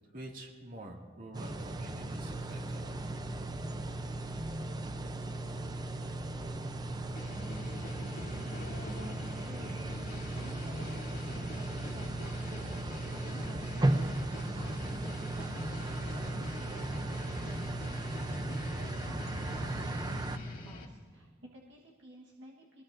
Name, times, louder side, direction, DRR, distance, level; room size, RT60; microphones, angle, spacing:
voice 1, 0.1-3.0, right 1 dB, 45° right, 0 dB, 2.2 m, -47 dB
sound 1, 1.3-20.4, right 2 dB, 20° right, 0.6 m, -36 dB
sound 2, 7.1-20.8, left 1 dB, 50° left, 2.2 m, -44 dB
voice 2, 8.6-9.9 10.3-17.7 18.2-22.8, right 1 dB, 65° right, -2 dB, 1.3 m, -53 dB
23.0 x 19.0 x 2.6 m, 1.5 s
head